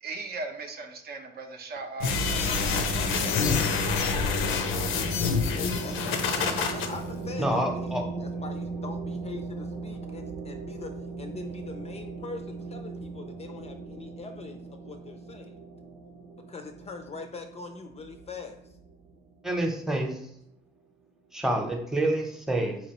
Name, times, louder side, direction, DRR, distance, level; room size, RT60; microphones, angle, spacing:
voice 1, 0.0-2.2 2.7-3.7, right 3 dB, 50° right, 4 dB, 0.6 m, -38 dB
sound 1, 2.0-6.9, left 5 dB, 90° left, 0.5 m, -27 dB
sound 2, 2.0-19.4, right 3 dB, 85° right, 0.7 m, -37 dB
voice 2, 5.7-7.6 8.4-10.9 11.2-14.6 14.9-15.5 16.5-18.6, left 4 dB, 30° left, 6 dB, 0.4 m, -42 dB
voice 3, 7.4-8.0 19.4-20.2 21.3-22.8, right 1 dB, ahead, 2 dB, 0.8 m, -27 dB
4.1 x 2.9 x 2.9 m, 0.72 s
cardioid pair, 90°, 20 cm